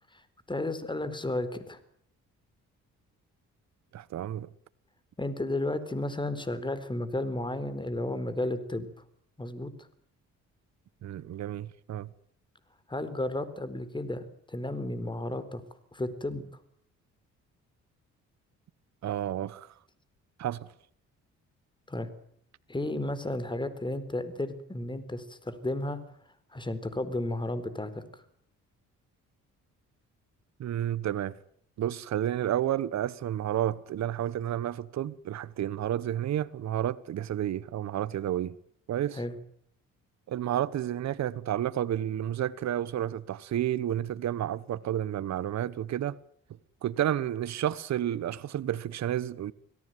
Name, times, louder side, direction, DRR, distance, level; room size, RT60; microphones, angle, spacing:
voice 1, 0.5-1.8 5.2-8.9 9.4-9.9 12.9-15.6 15.9-16.4 21.9-22.1 22.7-26.0 26.5-28.2 39.1-39.4, left 1 dB, 15° left, 4.1 m, -33 dB
voice 2, 3.9-4.5 11.0-12.1 19.0-19.7 20.4-20.7 30.6-31.4 31.8-38.6 38.9-39.2 40.3-46.2 46.8-49.5, right 11 dB, 65° right, 1.1 m, -31 dB
26.0 x 17.5 x 9.3 m
cardioid pair, 90°, 30 cm